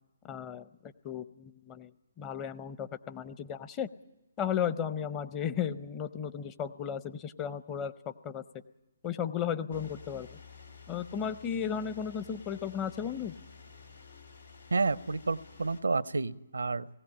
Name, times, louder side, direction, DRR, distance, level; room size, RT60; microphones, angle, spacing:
voice 1, 0.2-1.9 2.2-3.9 4.4-8.4 9.0-10.4 10.9-13.3, left 8 dB, 20° left, 13 dB, 0.7 m, -35 dB
sound 1, 9.7-15.8, left 5 dB, 85° left, 3.3 m, -52 dB
voice 2, 14.7-16.9, right 3 dB, 80° right, 18 dB, 0.6 m, -30 dB
18.5 x 16.5 x 8.6 m, 1.0 s
figure-of-eight pair, 140°, 0 cm